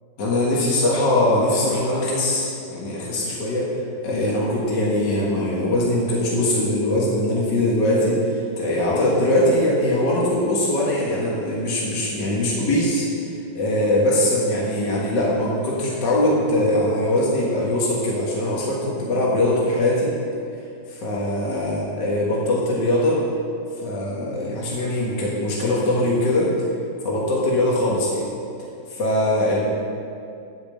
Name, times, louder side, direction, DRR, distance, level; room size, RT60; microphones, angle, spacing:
voice 1, 0.2-3.7 4.0-13.1 13.5-20.1 20.9-23.2 23.8-26.5 27.0-28.2 28.9-29.7, left 1 dB, 65° left, -5 dB, 2.3 m, -21 dB
14.5 x 5.3 x 7.6 m, 2.5 s
omnidirectional pair, 2.0 m